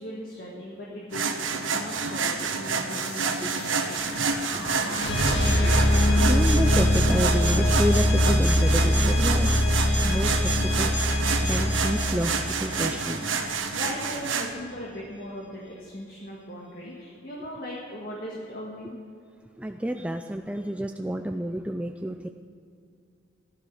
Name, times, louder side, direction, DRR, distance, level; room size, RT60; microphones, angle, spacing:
voice 1, 0.0-3.9 13.7-19.0, equal, 50° left, -4 dB, 1.8 m, -38 dB
sound 1, 1.1-14.5, right 5 dB, 85° right, 1.3 m, -29 dB
sound 2, 2.9-13.7, left 1 dB, 65° left, 1.5 m, -23 dB
voice 2, 6.2-9.7 10.0-13.2 19.6-22.3, equal, 5° right, 5 dB, 0.3 m, -30 dB
16.0 x 11.5 x 4.9 m, 2.3 s
head